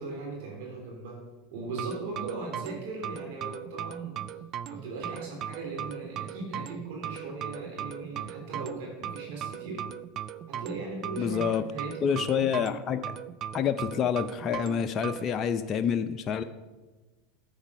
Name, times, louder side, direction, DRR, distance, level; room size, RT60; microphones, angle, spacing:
voice 1, 0.0-4.3 4.7-9.9 10.5-12.5, right 3 dB, 70° right, 0 dB, 2.9 m, -38 dB
sound 1, 1.7-15.3, right 10 dB, 45° right, 0.4 m, -38 dB
voice 2, 11.2-11.6 12.0-13.1 13.5-16.4, left 8 dB, 35° left, 8 dB, 0.5 m, -28 dB
10.0 x 7.1 x 5.4 m, 1.2 s
hypercardioid pair, 100°, 0 cm